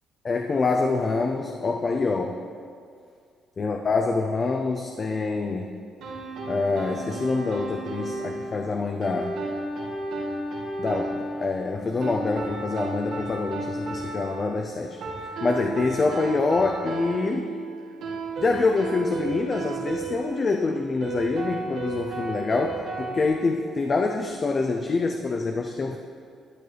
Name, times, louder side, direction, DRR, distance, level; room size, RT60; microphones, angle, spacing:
voice 1, 0.2-2.4 3.6-5.7 6.5-9.4 10.8-17.5 18.4-26.0, left 3 dB, 35° left, 3 dB, 0.5 m, -26 dB
sound 1, 6.0-23.3, right 3 dB, 75° right, 2.8 m, -33 dB
12.5 x 9.1 x 3.4 m, 2.2 s
cardioid pair, 120°, 0 cm